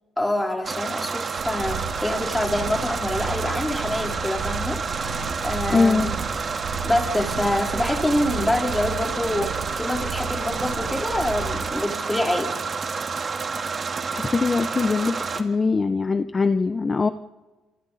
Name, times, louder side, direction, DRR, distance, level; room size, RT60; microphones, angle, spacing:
voice 1, 0.2-6.2 6.8-12.5, left 1 dB, 10° left, 2 dB, 4.2 m, -26 dB
sound 1, 0.6-15.4, right 5 dB, 45° right, 2.2 m, -29 dB
sound 2, 1.4-11.7, right 5 dB, 75° right, 6.2 m, -34 dB
voice 2, 5.7-6.1 13.9-17.1, left 4 dB, 30° left, 10 dB, 0.9 m, -22 dB
27.5 x 27.0 x 4.2 m, 1.2 s
cardioid pair, 80°, 0 cm